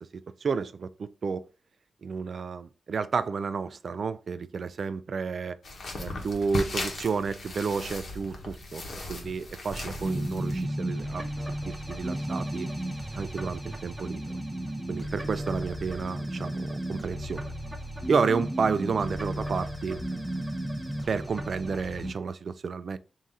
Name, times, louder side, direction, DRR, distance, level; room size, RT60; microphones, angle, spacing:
voice 1, 0.1-1.5 2.0-5.6 6.0-8.8 9.1-12.7 13.1-14.2 14.9-17.5 18.1-20.0 21.1-23.0, right 5 dB, 50° right, 0.3 m, -31 dB
sound 1, 5.6-10.6, left 2 dB, 55° left, 1.0 m, -37 dB
sound 2, 9.7-22.1, right 1 dB, 5° right, 0.6 m, -34 dB
3.7 x 2.6 x 4.1 m
wide cardioid pair, 135°, 0 cm